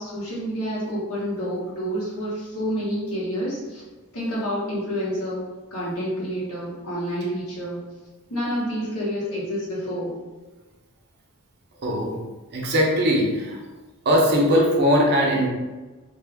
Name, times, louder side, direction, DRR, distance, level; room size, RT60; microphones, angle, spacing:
voice 1, 0.0-3.8 4.1-7.8 8.3-10.2, equal, 85° left, -6 dB, 1.3 m, -28 dB
voice 2, 11.8-12.2 12.5-13.6 14.0-15.5, equal, 50° right, -2 dB, 0.7 m, -20 dB
3.3 x 2.4 x 3.4 m, 1.2 s
head